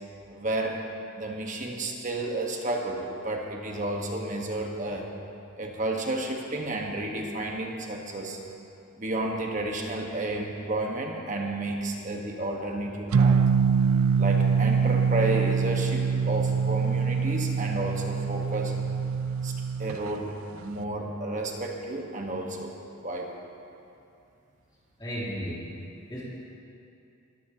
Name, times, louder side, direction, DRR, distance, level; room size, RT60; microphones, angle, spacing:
voice 1, 0.3-0.8 1.1-5.1 5.6-8.4 9.0-13.4 14.2-18.7 19.4-19.5 19.8-22.7 23.0-23.3, right 2 dB, 35° right, 1 dB, 1.4 m, -31 dB
sound 1, 13.1-20.0, right 6 dB, 80° right, 0.4 m, -24 dB
voice 2, 25.0-25.7 26.1-26.2, equal, 20° left, -9 dB, 3.2 m, -34 dB
21.0 x 14.0 x 2.9 m, 2.6 s
head